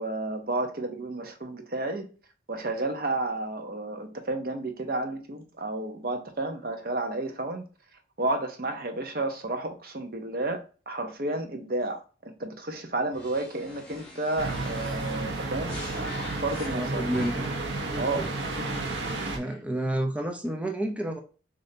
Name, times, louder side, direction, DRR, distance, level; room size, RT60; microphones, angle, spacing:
voice 1, 0.0-2.0 2.5-7.6 8.2-10.6 10.9-16.1 16.4-17.0 18.0-18.2 18.7-18.8 19.2-19.4, right 2 dB, 55° right, 0.8 m, -31 dB
sound 1, 13.1-17.7, left 2 dB, 10° left, 1.7 m, -45 dB
sound 2, 14.4-19.4, right 2 dB, 85° right, 1.0 m, -32 dB
voice 2, 16.7-17.5 17.9-18.3 19.3-21.2, right 1 dB, 5° right, 0.6 m, -30 dB
6.7 x 2.7 x 2.7 m
head